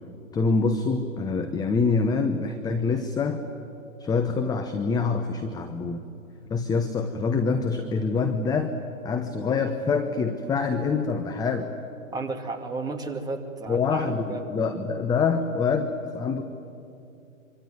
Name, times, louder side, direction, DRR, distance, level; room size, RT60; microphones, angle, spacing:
voice 1, 0.3-3.4 4.0-6.0 6.5-8.8 9.0-11.7 13.7-16.4, left 4 dB, 10° left, 6 dB, 1.0 m, -25 dB
voice 2, 12.1-14.5, right 3 dB, 10° right, 2 dB, 2.4 m, -33 dB
26.0 x 24.0 x 9.4 m, 2.7 s
hypercardioid pair, 130°, 41 cm